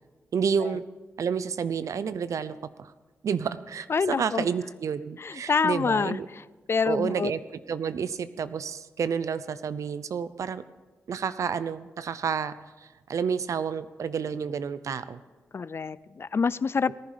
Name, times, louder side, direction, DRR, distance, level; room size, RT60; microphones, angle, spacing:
voice 1, 0.3-0.8 1.2-2.9 3.2-6.3 6.8-7.4 7.7-10.6 11.1-15.2 16.9-17.0, right 6 dB, 70° right, 14 dB, 0.6 m, -30 dB
voice 2, 3.9-4.5 5.2-6.4 6.7-7.3 15.5-16.9, left 5 dB, 45° left, 19 dB, 0.4 m, -26 dB
18.5 x 10.5 x 5.1 m, 1.3 s
supercardioid pair, 45°, 6 cm